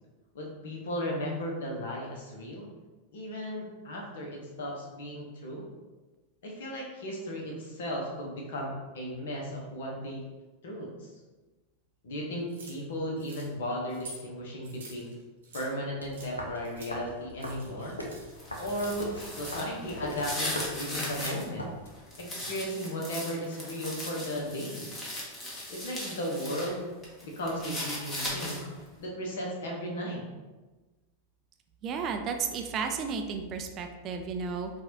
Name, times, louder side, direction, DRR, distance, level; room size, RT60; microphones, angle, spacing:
voice 1, 0.3-2.7 3.1-5.6 6.4-10.2 10.6-10.9 12.0-15.1 15.5-18.0 18.6-21.7 22.2-25.0 25.7-26.9 27.2-28.7 29.0-30.2, equal, 60° left, -1 dB, 0.9 m, -35 dB
sound 1, 12.5-12.8 13.2-13.5 13.9-14.2 14.6-15.7 16.1-16.3 16.6-16.9 17.3-18.3 18.6-19.6, right 3 dB, 65° right, 0.9 m, -48 dB
sound 2, 16.0-22.0, equal, 85° left, 0.6 m, -41 dB
sound 3, 18.3-21.4 21.9-26.7 27.0-28.8, left 1 dB, 20° left, 1.0 m, -38 dB
voice 2, 31.8-34.7, right 5 dB, 35° right, 5 dB, 0.4 m, -33 dB
4.5 x 2.4 x 2.8 m, 1.2 s
figure-of-eight pair, 90°, 0 cm